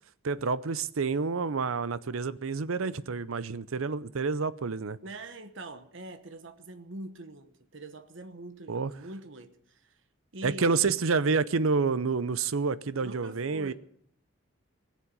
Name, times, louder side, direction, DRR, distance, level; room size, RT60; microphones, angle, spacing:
voice 1, 0.2-5.0 8.7-8.9 10.4-13.7, right 4 dB, 85° right, 0.7 m, -28 dB
voice 2, 5.0-10.0 10.3-10.9 13.0-13.7, right 1 dB, 65° right, 1.1 m, -44 dB
19.5 x 7.5 x 8.6 m
head